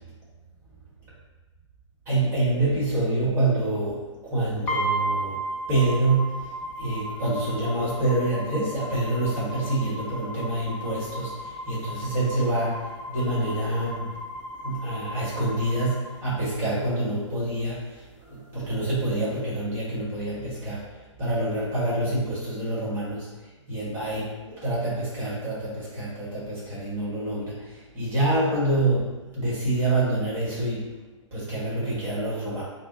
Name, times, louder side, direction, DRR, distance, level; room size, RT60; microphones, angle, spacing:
voice 1, 2.1-5.4 5.7-6.4 6.8-14.1 14.6-20.8 21.2-23.3 23.7-30.9 31.3-32.6, right 2 dB, 15° right, -7 dB, 1.4 m, -27 dB
sound 1, 4.7-16.7, right 1 dB, 5° left, 0.3 m, -35 dB
4.7 x 2.1 x 3.9 m, 1.2 s
figure-of-eight pair, 125°, 17 cm